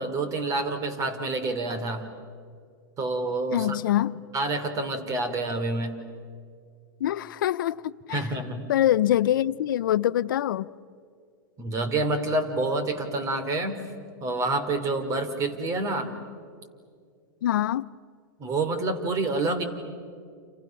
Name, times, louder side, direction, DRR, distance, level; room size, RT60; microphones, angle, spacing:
voice 1, 0.0-2.1 3.0-3.8 4.3-5.9 8.1-8.6 11.6-13.8 14.2-16.1 18.4-19.6, right 2 dB, 30° right, 3.3 m, -28 dB
voice 2, 3.5-4.2 7.0-8.2 8.7-10.7 17.4-17.9, left 12 dB, 75° left, 0.6 m, -24 dB
30.0 x 28.5 x 6.0 m
hypercardioid pair, 125°, 11 cm